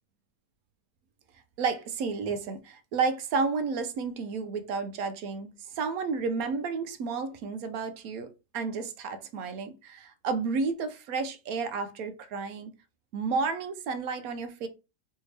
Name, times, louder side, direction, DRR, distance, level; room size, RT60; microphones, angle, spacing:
voice 1, 1.6-8.3 8.5-12.7 13.1-14.7, right 4 dB, 70° right, 1.0 m, -31 dB
3.3 x 2.7 x 3.1 m
omnidirectional pair, 1.7 m